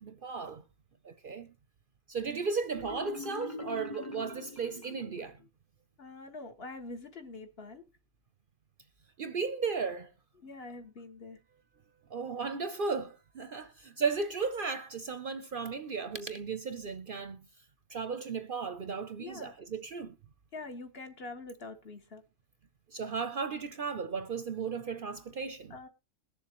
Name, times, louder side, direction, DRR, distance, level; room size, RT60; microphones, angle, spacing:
voice 1, 0.0-0.6 1.0-1.5 2.1-5.4 9.2-10.1 12.1-17.5 17.9-20.1 22.9-25.7, right 5 dB, 50° right, 0.7 m, -35 dB
Marimba xylophone, 2.7-5.5, left 2 dB, 15° left, 0.9 m, -43 dB
voice 2, 6.0-7.9 10.4-11.4 13.6-13.7 19.2-19.5 20.5-22.2 25.7-25.9, left 3 dB, 50° left, 1.5 m, -45 dB
21.5 x 7.2 x 3.0 m
omnidirectional pair, 1.3 m